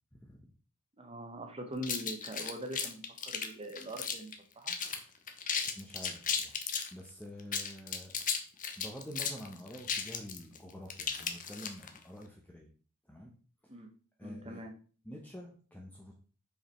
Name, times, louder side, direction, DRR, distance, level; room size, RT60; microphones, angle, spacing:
voice 1, 1.0-4.8 13.7-13.9 14.2-14.7, right 1 dB, 25° right, 4 dB, 1.1 m, -43 dB
sound 1, 1.8-4.3 4.7-5.0 5.3-6.9 7.4-12.0, left 6 dB, 40° left, 0.9 m, -35 dB
voice 2, 5.7-6.5 6.9-8.1 8.8-12.7 13.1-13.3 13.7-13.8 14.2-14.6 15.0-16.1, equal, 10° left, -1 dB, 0.9 m, -47 dB
5.5 x 4.9 x 4.4 m, 0.40 s
head